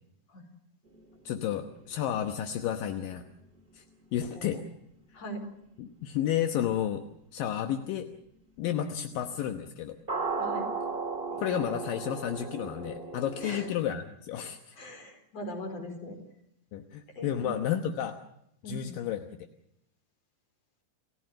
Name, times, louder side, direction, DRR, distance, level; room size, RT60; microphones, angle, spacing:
sound 1, 0.9-4.8 6.2-6.3 10.1-13.7, right 4 dB, 80° right, 0.5 m, -36 dB
voice 1, 1.3-3.2 3.7-3.8 4.1-4.6 5.8-7.0 7.3-8.1 8.6-10.0 11.4-14.6 16.7-18.2 18.6-19.3, left 10 dB, 70° left, 6 dB, 2.4 m, -31 dB
voice 2, 14.7-16.2 17.2-17.5 18.6-19.0, equal, 35° left, 6 dB, 5.0 m, -40 dB
29.0 x 16.0 x 7.7 m, 0.78 s
omnidirectional pair, 5.2 m